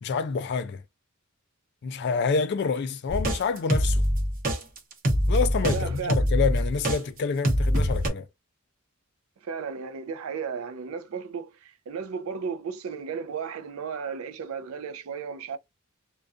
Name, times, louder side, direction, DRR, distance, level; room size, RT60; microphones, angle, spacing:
voice 1, 0.0-0.8 1.8-4.0 5.3-8.3, left 5 dB, 55° left, 0.3 m, -27 dB
sound 1, 3.1-7.0 7.4-8.1, equal, 40° right, 0.8 m, -24 dB
voice 2, 5.6-6.2 9.4-15.6, right 6 dB, 80° right, 0.4 m, -34 dB
2.3 x 2.2 x 2.4 m
head